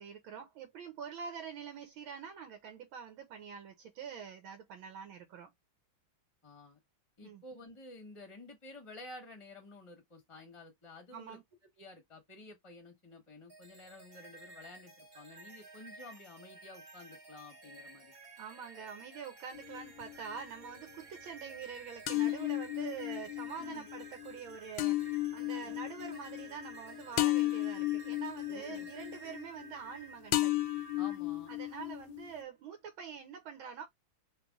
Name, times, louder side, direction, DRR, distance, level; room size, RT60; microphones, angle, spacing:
voice 1, 0.0-5.5 7.2-7.4 11.1-11.4 18.4-30.6 31.5-33.9, right 7 dB, 85° right, 1.7 m, -45 dB
voice 2, 6.4-6.8 7.2-11.4 11.8-18.1 22.1-22.4 23.6-23.9 25.6-25.8 28.5-28.9 31.0-31.5, left 2 dB, 20° left, 0.8 m, -51 dB
sound 1, 13.5-31.2, right 3 dB, 35° right, 1.1 m, -53 dB
sound 2, 19.5-20.4 22.1-30.0 30.3-32.4, left 17 dB, 80° left, 1.3 m, -34 dB
3.4 x 3.2 x 3.5 m
omnidirectional pair, 2.2 m